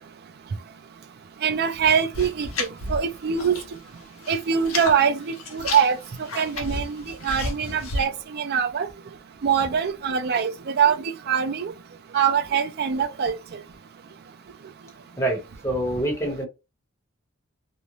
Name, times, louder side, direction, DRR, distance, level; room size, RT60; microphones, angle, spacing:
voice 1, 1.4-3.6 4.3-6.0 6.4-8.9 9.4-11.0 11.3-11.7 12.1-13.3, right 7 dB, 50° right, 0.4 m, -23 dB
sound 1, 2.1-3.7 4.0-5.0 5.3-8.0, left 3 dB, 85° left, 0.7 m, -32 dB
voice 2, 15.2-16.5, right 1 dB, 15° left, 1.0 m, -26 dB
2.5 x 2.1 x 2.9 m
head